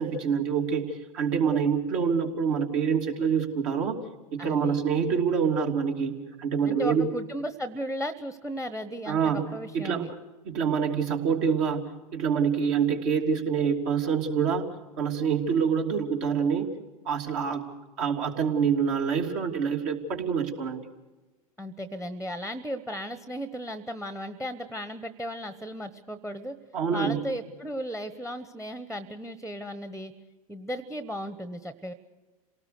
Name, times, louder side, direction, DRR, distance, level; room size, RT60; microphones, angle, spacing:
voice 1, 0.0-4.0 4.3-7.1 9.1-10.1 10.4-14.7 15.0-16.7 17.0-17.6 18.0-20.8 26.7-27.2, right 6 dB, 55° right, 2 dB, 3.0 m, -26 dB
voice 2, 4.4-4.8 6.6-10.1 21.6-26.6 26.9-30.1 30.5-31.9, equal, 5° right, 13 dB, 1.1 m, -35 dB
27.5 x 18.5 x 6.7 m, 1.1 s
hypercardioid pair, 90°, 19 cm